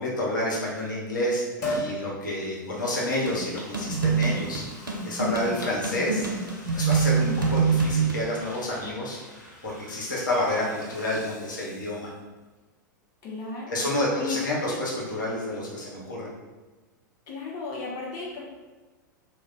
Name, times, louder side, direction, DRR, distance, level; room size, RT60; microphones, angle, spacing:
voice 1, 0.0-6.3 6.7-9.2 9.6-12.1 13.7-16.3, left 1 dB, 75° left, -4 dB, 0.8 m, -29 dB
Liquid, 1.6-2.0 2.5-12.2 12.5-12.6, left 1 dB, 55° left, 1.2 m, -40 dB
sound 1, 3.3-8.2, right 5 dB, 90° right, 0.5 m, -25 dB
voice 2, 7.2-7.5 13.2-13.9 14.1-14.4 17.3-18.4, left 3 dB, 35° left, -4 dB, 0.6 m, -34 dB
2.2 x 2.1 x 3.7 m, 1.2 s
figure-of-eight pair, 95°, 11 cm